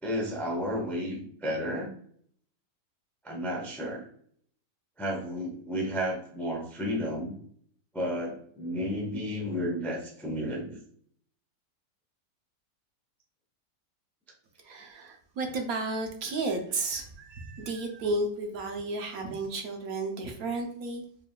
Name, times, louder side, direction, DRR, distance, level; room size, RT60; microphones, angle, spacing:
voice 1, 0.0-1.9 3.2-4.1 5.0-7.3 7.9-10.8, equal, 5° left, 0 dB, 0.3 m, -32 dB
voice 2, 14.6-21.0, right 2 dB, 65° right, 4 dB, 1.1 m, -33 dB
4.8 x 3.5 x 2.3 m, 0.62 s
omnidirectional pair, 1.8 m